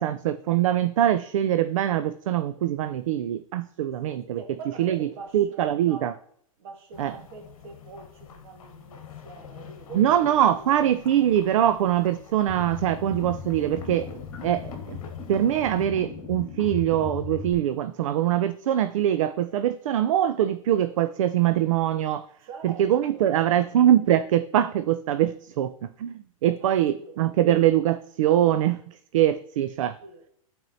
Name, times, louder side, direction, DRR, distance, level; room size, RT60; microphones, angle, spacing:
voice 1, 0.0-4.4 4.8-5.0 5.3-6.1 7.0-7.1 9.9-14.1 14.4-15.0 15.3-22.3 22.6-30.0, right 11 dB, 65° right, 0.4 m, -23 dB
voice 2, 4.0-6.2 6.6-10.8 22.4-24.0 26.6-27.2 30.0-30.3, right 4 dB, 45° right, 1.5 m, -44 dB
sound 1, 6.9-15.9, left 8 dB, 70° left, 1.1 m, -46 dB
sound 2, 12.5-17.5, left 6 dB, 10° left, 1.4 m, -37 dB
12.0 x 4.4 x 2.7 m
supercardioid pair, 165°, 18 cm